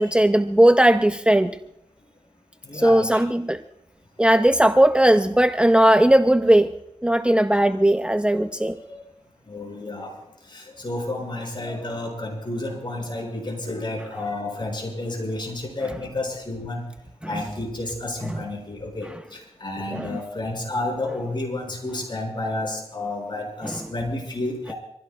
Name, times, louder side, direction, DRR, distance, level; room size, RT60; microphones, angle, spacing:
voice 1, 0.0-1.5 2.7-3.6 4.2-6.7 7.0-8.8 17.2-17.3 18.2-18.4 19.9-20.2 23.6-23.7, right 1 dB, 10° right, 8 dB, 0.7 m, -18 dB
voice 2, 2.6-3.2 4.3-4.4 8.9-9.0 9.5-10.1 10.5-16.8 17.3-24.7, left 2 dB, 45° left, -1 dB, 7.0 m, -31 dB
26.0 x 16.0 x 2.5 m, 0.78 s
cardioid pair, 50°, 11 cm